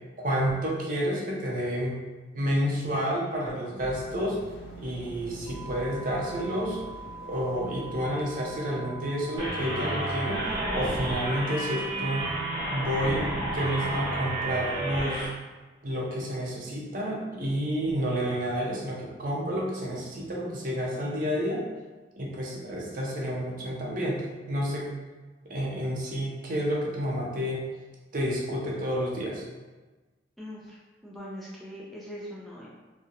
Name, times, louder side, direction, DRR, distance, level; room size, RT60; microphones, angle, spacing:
voice 1, 0.2-2.0 2.3-4.4 4.8-6.8 7.2-12.3 12.7-15.3 15.8-21.7 22.2-24.9 25.5-27.7 28.1-29.4, equal, 50° right, -3 dB, 0.5 m, -30 dB
sound 1, 3.8-10.8, right 1 dB, 70° left, 0.5 m, -45 dB
sound 2, 5.5-14.4, right 4 dB, 80° right, 0.9 m, -44 dB
sound 3, 9.4-15.3, right 1 dB, 20° right, 0.7 m, -31 dB
voice 2, 30.4-32.7, equal, ahead, -7 dB, 0.3 m, -41 dB
2.4 x 2.0 x 2.7 m, 1.3 s
head